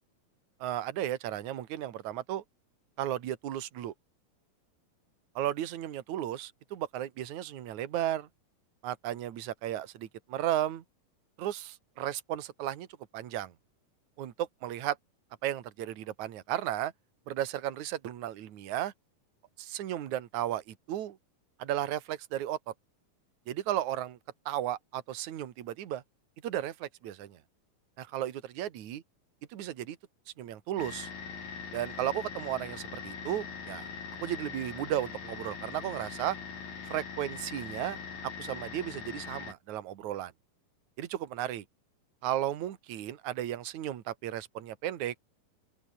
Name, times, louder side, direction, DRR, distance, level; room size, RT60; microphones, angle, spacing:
voice 1, 0.6-2.4 3.0-3.9 5.4-8.3 8.8-10.8 11.4-12.9 13.1-13.5 14.2-15.0 15.4-16.9 17.3-18.9 19.6-21.2 21.6-22.7 23.5-24.2 24.5-26.0 26.4-27.4 28.0-29.0 29.5-30.0 30.4-31.1 31.7-33.9 34.2-36.4 36.8-38.0 38.4-40.3 41.0-41.6 42.2-45.1, right 12 dB, 60° right, 2.9 m, -34 dB
sound 1, 30.8-39.5, left 6 dB, 85° left, 6.0 m, -42 dB
open air
omnidirectional pair, 4.0 m